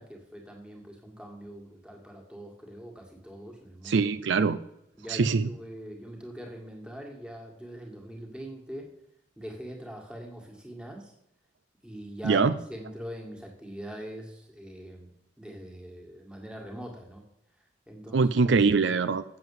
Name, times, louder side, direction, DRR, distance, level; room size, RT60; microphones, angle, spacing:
voice 1, 0.0-4.1 4.9-8.9 9.4-11.1 11.8-15.1 15.4-17.2 17.6-18.5, equal, 5° right, 0 dB, 1.9 m, -43 dB
voice 2, 3.9-4.6 5.1-5.5 12.2-12.5 18.1-19.2, right 4 dB, 70° right, 14 dB, 0.5 m, -23 dB
7.8 x 7.7 x 7.2 m, 0.79 s
head